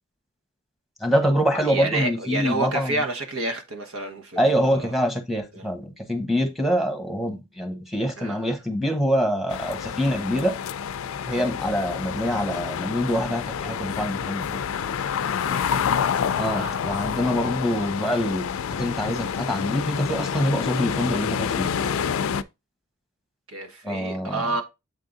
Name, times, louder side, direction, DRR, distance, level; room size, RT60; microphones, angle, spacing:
voice 1, 1.0-2.9 4.4-10.6 11.3-14.6 16.4-18.5 18.8-21.7 23.8-24.4, equal, ahead, 1.2 m, -25 dB
voice 2, 1.7-4.9 5.5-5.7 8.2-8.5 15.3-16.1 16.5-16.8 23.5-24.6, right 2 dB, 80° right, 1.2 m, -30 dB
sound 1, 9.5-22.4, left 7 dB, 75° left, 0.4 m, -28 dB
7.6 x 3.7 x 3.9 m
head